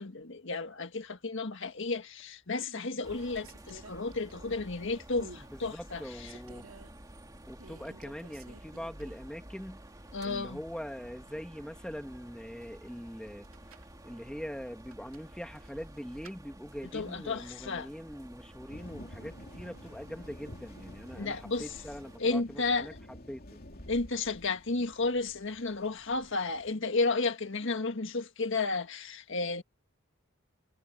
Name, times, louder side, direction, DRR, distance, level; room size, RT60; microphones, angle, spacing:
voice 1, 0.0-6.0 10.1-10.6 16.9-17.9 21.2-21.7 22.2-22.9 23.9-29.6, left 3 dB, 65° left, 1.7 m, -32 dB
sound 1, 1.8-2.2 2.6-4.7 5.2-5.5 5.9-6.9 7.6-9.4 9.7-9.8 13.3-14.0 14.9-16.4, right 3 dB, 80° right, 2.8 m, -53 dB
sound 2, 3.0-22.2, right 1 dB, 20° right, 2.2 m, -51 dB
voice 2, 5.4-6.7 7.5-9.8 10.2-13.5 14.0-23.6, equal, 5° left, 1.9 m, -43 dB
sound 3, 18.7-26.7, left 1 dB, 45° left, 3.0 m, -51 dB
head